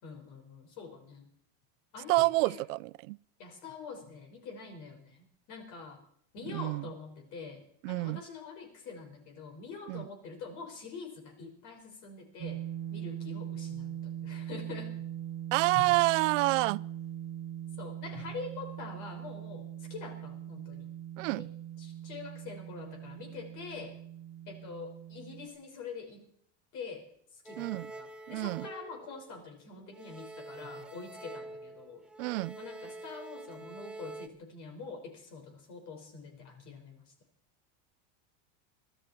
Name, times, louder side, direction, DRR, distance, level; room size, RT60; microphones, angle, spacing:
voice 1, 0.0-1.3 1.9-2.6 3.4-6.0 6.3-12.6 12.9-15.1 15.7-15.8 17.8-20.9 21.4-21.5 21.8-24.0 24.5-26.3 26.7-27.1 27.3-32.0 32.6-37.1, left 5 dB, 50° left, 5.5 m, -45 dB
voice 2, 2.1-3.2 6.5-6.8 7.8-8.2 9.9-10.0 15.5-16.8 21.2-21.5 27.6-27.9 28.3-28.7 32.2-32.6, right 22 dB, 80° right, 0.5 m, -28 dB
Dist Chr Emin rock, 12.4-25.5, right 11 dB, 40° right, 4.7 m, -41 dB
sound 1, 27.5-29.6 29.9-34.3, right 2 dB, 5° right, 0.7 m, -46 dB
24.0 x 13.0 x 4.5 m
supercardioid pair, 140°, 37 cm